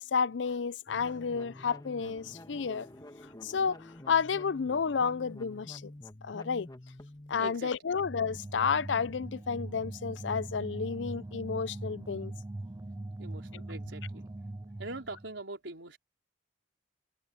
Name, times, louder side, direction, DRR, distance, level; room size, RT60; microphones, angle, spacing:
voice 1, 0.0-2.9 3.4-3.8 4.1-5.9 6.2-6.7 7.3-12.3, left 6 dB, 75° left, 0.5 m, -31 dB
sound 1, 0.9-7.5, left 1 dB, 20° left, 1.3 m, -49 dB
voice 2, 7.4-7.9 13.2-14.3 14.6-16.0, right 2 dB, 90° right, 4.3 m, -43 dB
sound 2, 7.9-15.3, right 2 dB, 15° right, 0.4 m, -41 dB
head